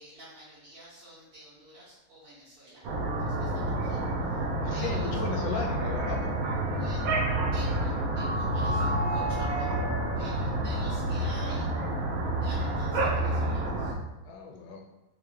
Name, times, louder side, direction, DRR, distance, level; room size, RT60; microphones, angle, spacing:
voice 1, 0.0-2.8 3.2-5.2 6.7-7.1 7.5-9.8 10.2-11.7 12.4-13.9, right 1 dB, 60° right, -13 dB, 2.0 m, -49 dB
sound 1, 2.8-13.9, right 1 dB, 85° right, 0.7 m, -29 dB
voice 2, 4.6-6.3 14.2-14.8, left 4 dB, 75° left, 1 dB, 1.2 m, -35 dB
5.6 x 2.1 x 3.1 m, 1.1 s
omnidirectional pair, 2.3 m